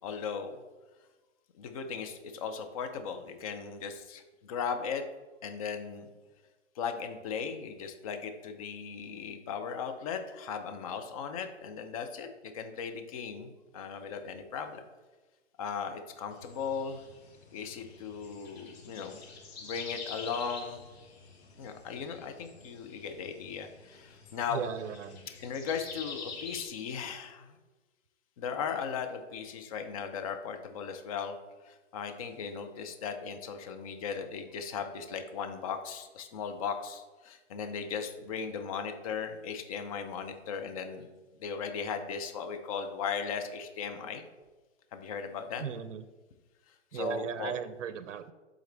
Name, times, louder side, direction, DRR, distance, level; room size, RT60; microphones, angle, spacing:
voice 1, 0.0-0.6 1.6-5.0 5.4-6.1 6.8-12.3 12.5-14.8 15.6-17.0 17.5-19.2 19.6-20.8 21.6-24.6 25.4-27.6 28.4-31.4 31.6-41.1 41.4-44.2 44.9-45.6 46.9-47.5, left 6 dB, 30° left, 6 dB, 0.5 m, -37 dB
sound 1, 16.3-26.7, left 4 dB, 55° left, 1.5 m, -47 dB
voice 2, 24.5-25.3 45.6-46.0 46.9-48.3, right 7 dB, 75° right, 12 dB, 0.5 m, -36 dB
7.7 x 3.7 x 3.3 m, 1.2 s
hypercardioid pair, 135°, 37 cm